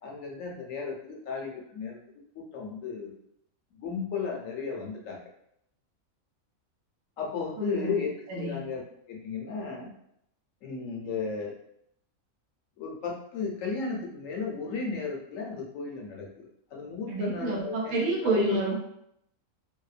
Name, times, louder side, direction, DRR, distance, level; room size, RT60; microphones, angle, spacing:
voice 1, 0.0-2.0 2.3-3.1 3.7-5.3 7.2-9.9 10.6-11.6 12.8-18.6, left 5 dB, 75° left, -1 dB, 0.9 m, -34 dB
voice 2, 7.6-8.0 8.3-8.6 17.1-18.7, right 3 dB, 90° right, -2 dB, 1.1 m, -29 dB
2.7 x 2.1 x 2.4 m, 0.74 s
omnidirectional pair, 1.5 m